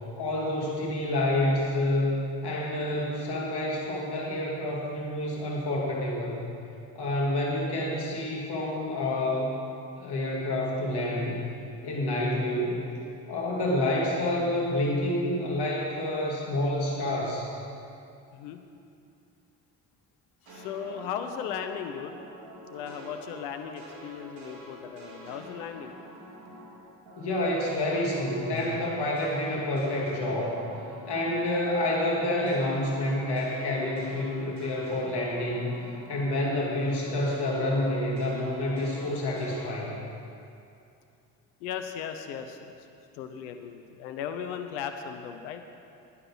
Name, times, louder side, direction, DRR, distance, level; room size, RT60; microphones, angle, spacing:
voice 1, 0.2-6.5 6.9-9.5 10.0-11.4 11.8-12.8 13.3-17.5 27.2-30.6 31.1-35.7 36.1-40.0, left 1 dB, 60° left, -3 dB, 2.6 m, -28 dB
voice 2, 18.3-18.6 20.4-22.2 22.7-25.9 41.6-42.8 43.1-45.6, left 8 dB, 85° left, 7 dB, 0.8 m, -37 dB
sound 1, 20.5-26.8 27.1-36.4 36.7-39.7, equal, 80° right, 2.6 m, -46 dB
11.0 x 9.9 x 6.1 m, 2.6 s
hypercardioid pair, 45°, 45 cm